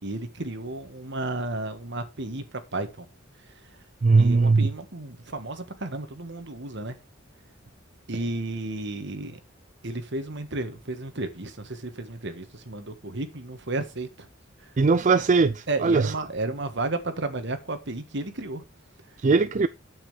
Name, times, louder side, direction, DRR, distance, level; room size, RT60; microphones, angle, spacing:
voice 1, 0.0-3.1 3.4-3.8 4.1-7.0 8.1-9.4 9.8-14.3 14.6-14.7 15.7-18.6 19.1-19.2, right 2 dB, 60° right, 1.6 m, -33 dB
voice 2, 4.0-4.7 14.8-16.1 19.2-19.7, right 4 dB, 40° right, 0.4 m, -20 dB
8.7 x 7.7 x 4.8 m
head